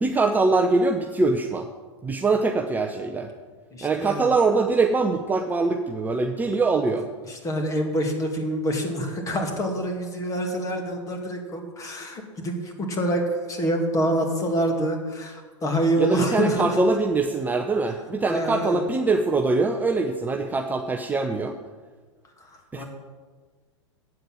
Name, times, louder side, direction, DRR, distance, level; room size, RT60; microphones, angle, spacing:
voice 1, 0.0-1.7 2.0-3.3 3.8-7.1 16.0-21.6 22.7-22.8, right 3 dB, 10° right, 2 dB, 0.7 m, -23 dB
voice 2, 3.7-4.4 7.2-16.8 18.3-18.8 22.4-22.8, right 1 dB, 20° left, 3 dB, 2.3 m, -26 dB
8.4 x 7.8 x 9.0 m, 1.4 s
figure-of-eight pair, 100°, 16 cm